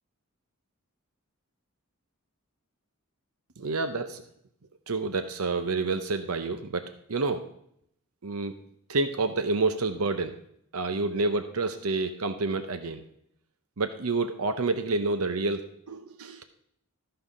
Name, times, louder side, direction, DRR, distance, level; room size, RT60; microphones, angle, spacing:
voice 1, 3.6-4.2 4.9-7.5 8.2-8.5 8.9-10.4 10.7-13.0 13.8-16.4, right 3 dB, 80° right, 9 dB, 0.7 m, -29 dB
13.5 x 5.7 x 5.0 m, 0.71 s
head